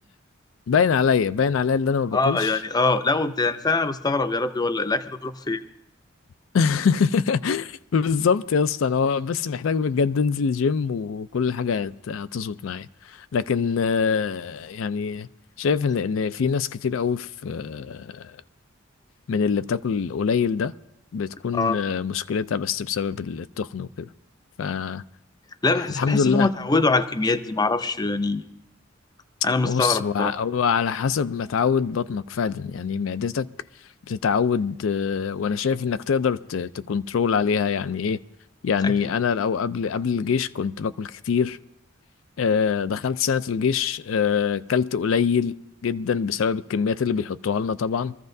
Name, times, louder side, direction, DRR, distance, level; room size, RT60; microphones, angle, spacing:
voice 1, 0.7-2.6 6.5-15.3 15.6-18.3 19.3-20.7 21.1-24.1 24.6-25.0 26.0-26.5 29.6-33.5 34.1-38.2 38.6-41.6 42.4-45.6 45.8-48.2, left 6 dB, 85° left, 0.4 m, -24 dB
voice 2, 2.1-5.6 21.5-21.8 25.6-28.4 29.4-30.3 38.8-38.9, left 3 dB, 20° left, 0.5 m, -23 dB
23.5 x 14.0 x 2.7 m
head